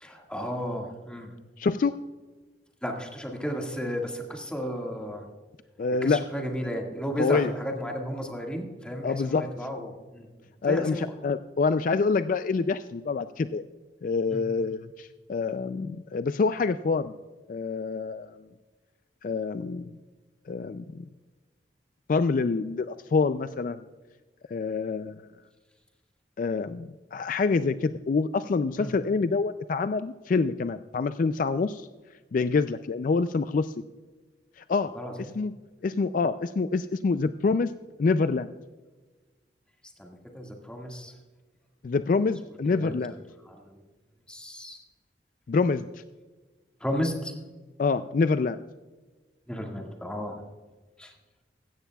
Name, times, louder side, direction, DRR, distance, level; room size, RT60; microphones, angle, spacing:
voice 1, 0.0-1.3 2.8-5.3 6.0-10.3 10.7-11.1 14.3-14.4 28.8-28.9 34.9-35.3 40.0-41.1 42.7-42.9 43.4-43.8 44.3-44.8 46.8-47.3 49.5-50.4 51.0-51.1, equal, 5° left, 1 dB, 1.8 m, -33 dB
voice 2, 1.6-1.9 5.8-6.2 7.2-7.5 9.0-9.5 10.6-13.6 14.0-17.2 17.5-18.3 19.2-19.9 20.5-21.0 22.1-23.8 24.5-25.3 26.4-31.9 32.3-33.7 34.6-34.9 35.4-35.5 35.8-37.7 38.0-38.5 41.8-43.1 45.5-45.9 47.8-48.6, left 4 dB, 50° left, 12 dB, 0.3 m, -26 dB
16.5 x 14.0 x 2.3 m, 1.3 s
head